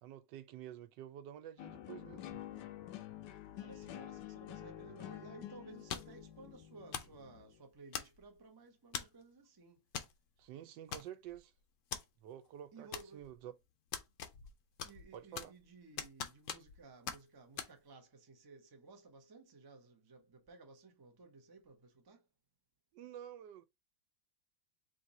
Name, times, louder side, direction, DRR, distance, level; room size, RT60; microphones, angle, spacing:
voice 1, 0.0-2.4 10.4-11.5 12.2-13.5 15.1-15.5 22.9-23.6, right 11 dB, 85° right, 1.2 m, -50 dB
sound 1, 1.6-7.6, left 12 dB, 85° left, 1.3 m, -49 dB
voice 2, 3.5-9.8 12.7-13.3 14.8-22.2, right 3 dB, 35° right, 0.3 m, -57 dB
sound 2, 5.9-6.2 6.9-7.2 7.9-8.4 8.9-9.2 9.9-10.1 10.4-10.5 10.9-11.4 11.9-12.0 12.9-13.4 13.9-14.5 14.8-15.6 16.0-16.8 17.1-17.2 17.6-17.7, left 8 dB, 65° left, 0.8 m, -42 dB
3.7 x 2.6 x 4.0 m
omnidirectional pair, 1.9 m